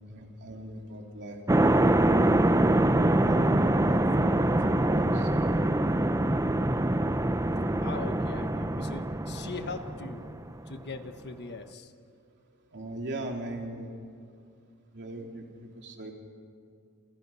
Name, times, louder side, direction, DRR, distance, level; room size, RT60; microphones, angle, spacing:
voice 1, 0.1-1.4 2.3-2.9 3.3-5.3 12.7-14.0 14.9-16.1, right 1 dB, 50° right, 1 dB, 3.2 m, -39 dB
sound 1, 1.5-10.5, right 1 dB, 15° right, 0.7 m, -24 dB
voice 2, 7.8-10.3 10.7-11.9, left 3 dB, 50° left, 8 dB, 1.3 m, -40 dB
29.0 x 28.0 x 5.7 m, 2.4 s
head